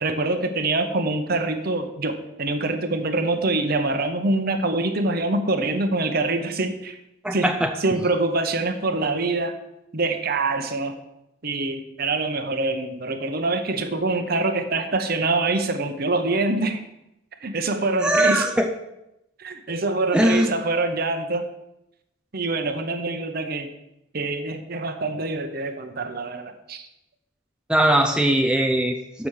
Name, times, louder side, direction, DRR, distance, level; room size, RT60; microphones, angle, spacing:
voice 1, 0.0-7.0 7.3-7.5 7.8-9.6 9.9-11.0 11.4-16.8 17.4-18.5 19.4-21.5 22.3-23.7 24.1-26.9, right 2 dB, 50° right, 7 dB, 0.8 m, -25 dB
voice 2, 7.2-7.7 18.0-18.7 20.1-20.5 27.7-29.3, right 1 dB, 5° right, 3 dB, 0.5 m, -20 dB
7.2 x 6.0 x 6.4 m, 0.88 s
head